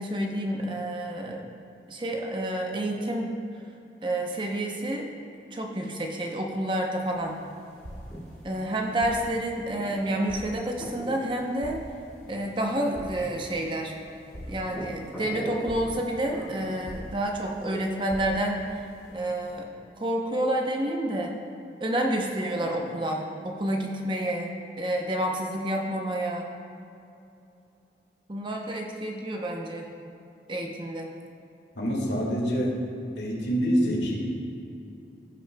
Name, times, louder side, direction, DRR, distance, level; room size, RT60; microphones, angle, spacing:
voice 1, 0.0-1.4 1.9-3.3 4.0-5.0 5.5-7.4 8.4-11.8 12.3-13.9 14.5-18.6 19.1-19.7 20.0-21.3 21.8-26.5 28.3-29.9 30.5-31.1, right 1 dB, 25° right, 1 dB, 0.7 m, -29 dB
sound 1, 6.9-19.6, equal, 5° left, 1.9 m, -44 dB
sound 2, 7.8-8.3 9.0-9.4 10.3-10.7 11.6-12.1 12.9-13.4 14.3-14.9 15.7-16.1 16.9-17.4 18.1-18.5, equal, 70° right, 1.3 m, -41 dB
voice 2, 31.8-32.7 33.2-34.2, equal, 85° left, -3 dB, 1.8 m, -26 dB
15.5 x 6.0 x 2.2 m, 2.7 s
head